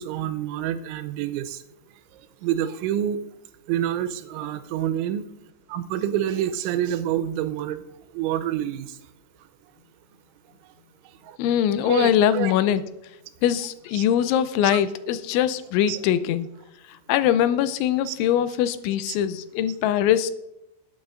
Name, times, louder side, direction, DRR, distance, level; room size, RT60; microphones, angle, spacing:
voice 1, 0.0-1.6 2.4-3.2 3.7-5.2 5.7-7.8 8.1-8.9 11.3-11.4 11.8-12.5 13.9-14.0 14.7-14.8 15.9-16.1 18.1-18.2 19.1-19.2, right 11 dB, 85° right, 10 dB, 3.1 m, -27 dB
voice 2, 11.4-12.8 13.4-16.5 17.1-20.3, left 10 dB, 90° left, 13 dB, 3.0 m, -22 dB
18.5 x 9.0 x 2.5 m, 0.86 s
omnidirectional pair, 5.3 m